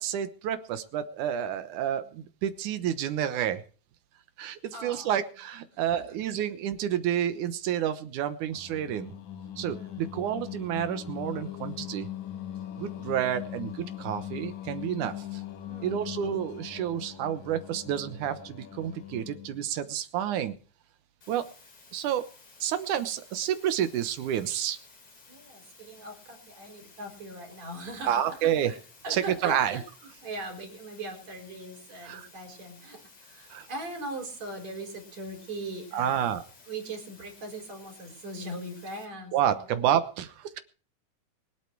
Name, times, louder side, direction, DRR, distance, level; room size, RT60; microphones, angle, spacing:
voice 1, 0.0-3.6 4.4-9.1 9.6-12.1 12.8-15.4 15.8-20.5 21.3-21.5 21.9-22.3 22.6-24.8 28.1-28.7 29.1-29.8 32.0-32.3 33.5-33.7 35.9-36.4 39.3-40.6, right 10 dB, 85° right, 11 dB, 2.6 m, -29 dB
voice 2, 4.7-5.1 5.7-6.0 9.7-10.2 15.6-16.3 25.3-28.8 29.0-36.3 36.7-39.7, right 1 dB, 65° right, 3 dB, 5.6 m, -40 dB
Singing, 8.5-19.7, left 10 dB, 75° left, 2.5 m, -40 dB
sound 1, 21.2-39.1, left 4 dB, 50° left, 4.9 m, -55 dB
24.0 x 8.7 x 4.6 m, 0.39 s
omnidirectional pair, 3.4 m